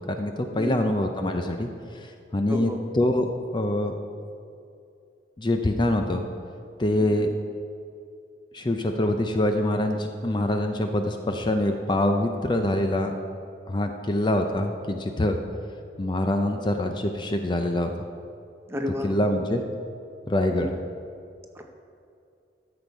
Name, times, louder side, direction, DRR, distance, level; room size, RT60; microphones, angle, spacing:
voice 1, 0.1-1.7 1.9-2.7 3.0-3.9 5.4-6.3 6.8-7.3 8.5-13.1 13.7-15.4 16.0-17.9 19.0-19.6 20.3-20.7, left 1 dB, 25° left, 5 dB, 0.5 m, -25 dB
voice 2, 2.5-2.8 7.2-7.3 18.7-19.1 20.5-20.7 21.5-21.6, left 1 dB, 15° right, 4 dB, 0.8 m, -31 dB
13.0 x 7.0 x 4.6 m, 2.5 s
head